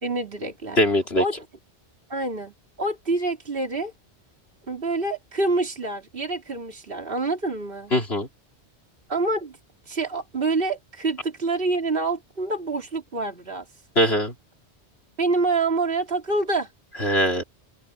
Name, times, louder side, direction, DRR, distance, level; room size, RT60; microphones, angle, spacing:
voice 1, 0.0-0.8 1.2-1.3 2.1-3.9 4.7-7.9 9.1-9.6 9.9-13.6 15.2-16.7, right 3 dB, 55° right, 3.4 m, -26 dB
voice 2, 0.8-1.2 7.9-8.3 14.0-14.3 17.0-17.4, equal, 70° left, 4.3 m, -21 dB
open air
omnidirectional pair, 1.1 m